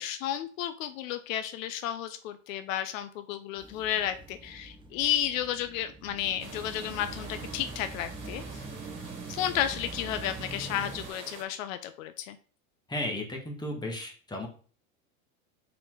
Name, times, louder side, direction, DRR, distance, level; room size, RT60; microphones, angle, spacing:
voice 1, 0.0-8.6 9.3-12.4, left 11 dB, 70° left, 10 dB, 0.7 m, -32 dB
sound 1, 3.6-11.1, right 3 dB, 10° right, 0.7 m, -43 dB
sound 2, 6.4-11.4, right 4 dB, 30° right, 2.9 m, -46 dB
voice 2, 12.9-14.5, left 1 dB, 10° left, 1 dB, 1.7 m, -34 dB
5.4 x 4.4 x 4.6 m, 0.41 s
supercardioid pair, 125°, 41 cm